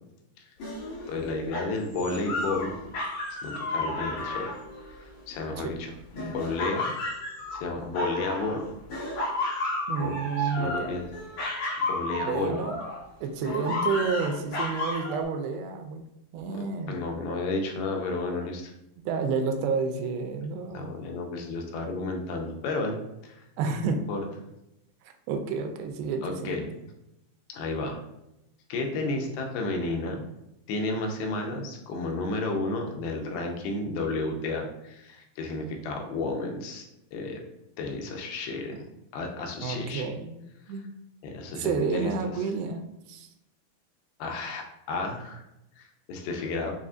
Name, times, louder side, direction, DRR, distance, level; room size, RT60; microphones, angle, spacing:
sound 1, 0.6-5.6 6.2-8.6 8.9-13.0 13.4-15.2, left 1 dB, 65° left, 2.8 m, -32 dB
voice 1, 1.1-2.7 3.3-7.0 7.5-8.6 10.0-11.1 11.4-11.6 11.9-12.6 16.9-18.7 20.7-23.4 23.8-24.3 26.2-26.7 27.5-28.0 28.7-30.2 30.7-36.9 37.1-37.4 37.8-38.8 39.1-40.1 41.2-42.1 44.2-45.4 45.8-46.7, left 3 dB, 90° left, 2 dB, 2.6 m, -32 dB
voice 2, 9.9-10.9 12.2-12.8 13.2-16.1 16.3-17.0 19.1-20.9 23.6-24.0 25.3-26.6 39.6-40.4 40.7-40.8 41.6-43.3, right 5 dB, 85° right, 5 dB, 2.3 m, -30 dB
6.7 x 2.4 x 2.4 m, 0.88 s
omnidirectional pair, 4.2 m